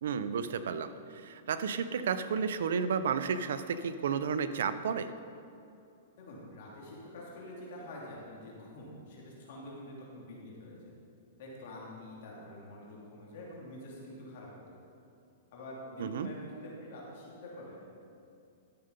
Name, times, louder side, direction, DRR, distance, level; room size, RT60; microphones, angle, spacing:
voice 1, 0.0-5.1 16.0-16.3, right 6 dB, 75° right, 11 dB, 0.6 m, -32 dB
voice 2, 6.2-10.9 11.4-14.6 15.5-17.8, left 1 dB, 60° left, -4 dB, 2.8 m, -46 dB
12.5 x 6.9 x 5.3 m, 2.6 s
hypercardioid pair, 140°, 0 cm